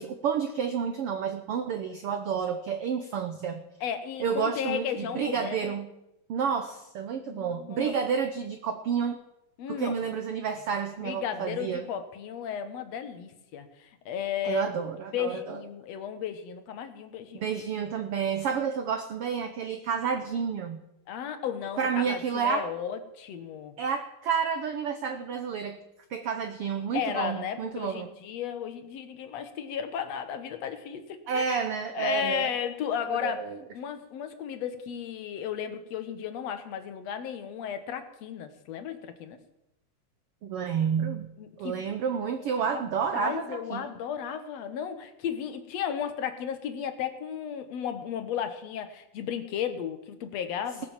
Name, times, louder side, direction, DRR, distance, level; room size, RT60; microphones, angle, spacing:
voice 1, 0.0-3.6 4.2-5.9 6.3-9.2 9.7-11.9 14.4-15.6 17.3-20.8 21.8-22.7 23.8-25.8 26.1-28.1 31.3-32.5 33.1-33.6 40.4-41.3 41.6-43.9, right 7 dB, 80° right, 8 dB, 1.3 m, -30 dB
voice 2, 3.8-5.7 7.3-7.9 9.6-10.0 11.0-14.6 15.1-17.5 21.1-23.8 26.9-31.7 31.9-33.5 33.7-39.4 41.4-41.8 42.7-42.8 43.1-50.8, left 8 dB, 60° left, 9 dB, 2.1 m, -34 dB
18.5 x 7.8 x 7.3 m, 0.87 s
omnidirectional pair, 3.8 m